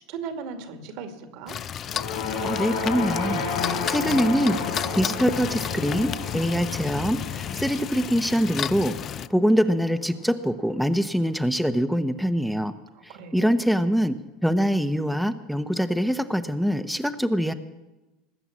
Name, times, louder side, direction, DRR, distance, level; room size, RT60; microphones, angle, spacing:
voice 1, 0.1-1.6 12.9-13.6, right 5 dB, 70° right, 6 dB, 2.3 m, -37 dB
sound 1, 1.5-9.3, left 9 dB, 45° left, 0.5 m, -32 dB
sound 2, 1.8-10.2, left 4 dB, 70° left, 5.5 m, -32 dB
voice 2, 2.4-12.7 13.3-14.2 14.4-17.5, equal, ahead, 9 dB, 0.9 m, -24 dB
19.5 x 8.0 x 7.5 m, 1.1 s
hypercardioid pair, 80°, 0 cm